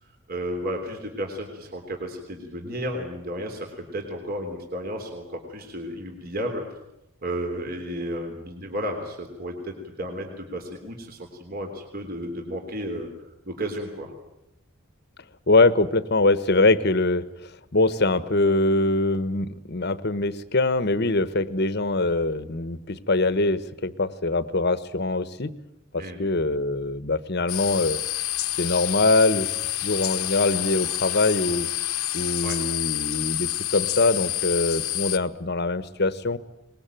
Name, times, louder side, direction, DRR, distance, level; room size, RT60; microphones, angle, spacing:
voice 1, 0.3-6.6 7.2-13.1 13.4-14.1 26.0-26.2 32.4-32.6, equal, 45° right, 3 dB, 3.4 m, -33 dB
voice 2, 15.5-17.2 17.7-25.5 25.9-28.0 28.6-29.5 29.8-31.7 32.1-36.4, left 2 dB, 50° left, 14 dB, 1.2 m, -23 dB
sound 1, 27.5-35.2, left 15 dB, 90° left, 1.2 m, -28 dB
23.5 x 21.0 x 9.1 m, 0.87 s
head